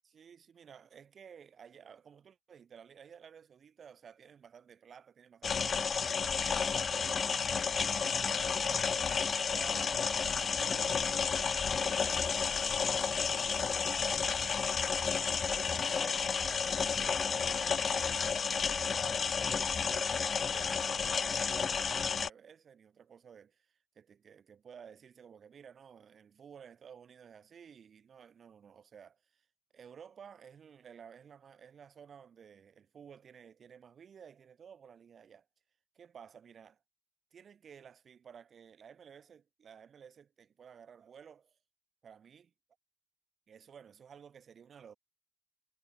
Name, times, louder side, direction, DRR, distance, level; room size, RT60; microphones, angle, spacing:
voice 1, 0.0-12.5 13.0-18.2 18.7-19.8 20.3-29.5 29.7-35.5 35.9-36.8 37.3-41.6 42.0-42.5 43.5-45.0, right 7 dB, 50° right, 5.9 m, -54 dB
sound 1, 5.4-22.3, left 6 dB, 40° left, 1.4 m, -31 dB
wide cardioid pair, 155°, 0 cm